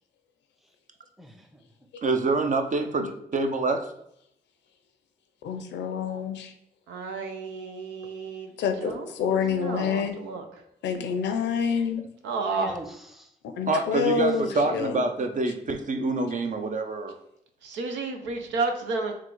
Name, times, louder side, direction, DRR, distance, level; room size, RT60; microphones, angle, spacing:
voice 1, 1.2-1.7 8.9-9.0 9.6-9.9 12.5-13.3 14.1-14.8, equal, ahead, 5 dB, 0.8 m, -42 dB
voice 2, 2.0-3.9 13.7-17.1, right 3 dB, 45° right, 6 dB, 0.6 m, -26 dB
voice 3, 5.4-6.5 8.6-10.2 10.8-12.0 13.4-15.0, left 6 dB, 80° left, 6 dB, 0.6 m, -27 dB
voice 4, 6.9-8.5 8.8-9.1 9.4-10.4 12.2-12.7 17.6-19.1, right 4 dB, 90° right, 4 dB, 0.6 m, -31 dB
3.7 x 2.4 x 4.6 m, 0.75 s
supercardioid pair, 50°, 18 cm